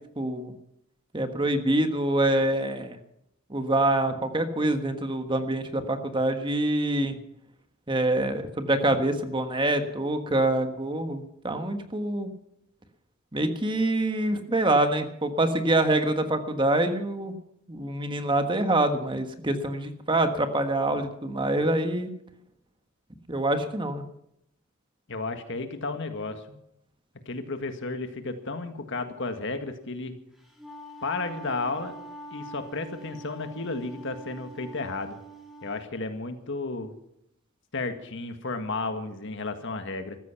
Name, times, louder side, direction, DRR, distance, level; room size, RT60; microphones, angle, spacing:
voice 1, 0.2-0.5 1.1-3.0 3.5-7.1 7.9-12.3 13.3-17.3 17.7-22.1 23.3-24.0, right 1 dB, 25° right, 7 dB, 1.4 m, -25 dB
voice 2, 25.1-26.6 27.2-30.2 31.0-32.0 32.3-35.2 35.6-36.9 37.7-40.2, left 3 dB, 60° left, 7 dB, 1.7 m, -33 dB
Wind instrument woodwind instrument, 30.4-35.8, right 2 dB, ahead, 3.6 m, -44 dB
15.5 x 13.5 x 5.8 m, 0.76 s
head